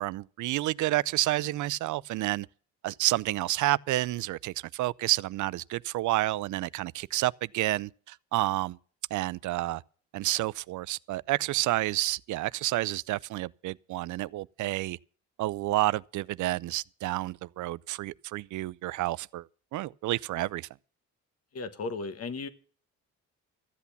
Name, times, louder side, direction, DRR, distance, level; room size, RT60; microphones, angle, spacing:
voice 1, 0.0-2.5 2.8-8.8 9.1-9.8 10.1-15.0 15.4-19.4 19.7-20.7, right 17 dB, 75° right, 0.5 m, -30 dB
voice 2, 21.5-22.5, left 4 dB, 55° left, 1.6 m, -35 dB
14.5 x 8.3 x 7.0 m
cardioid pair, 90°, 30 cm